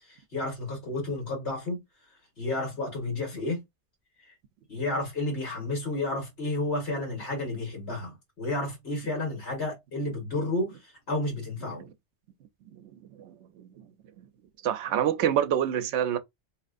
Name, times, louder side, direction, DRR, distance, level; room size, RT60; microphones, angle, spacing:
voice 1, 0.1-1.8 2.4-3.6 4.7-11.8, left 2 dB, 65° left, 1.8 m, -31 dB
voice 2, 13.2-13.9 14.2-14.3 14.6-16.2, right 10 dB, 75° right, 0.9 m, -28 dB
4.2 x 3.0 x 2.4 m
omnidirectional pair, 1.2 m